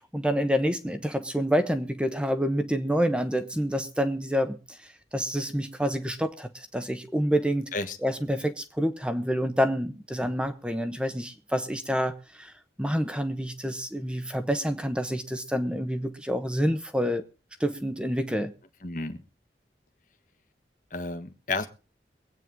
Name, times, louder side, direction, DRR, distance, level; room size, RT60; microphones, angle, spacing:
voice 1, 0.1-4.8 5.1-7.7 8.0-12.5 12.8-17.2 17.6-18.5, equal, 5° right, 1.1 m, -28 dB
voice 2, 18.8-19.2 20.9-21.7, left 3 dB, 45° left, 1.4 m, -31 dB
23.5 x 9.1 x 3.7 m
head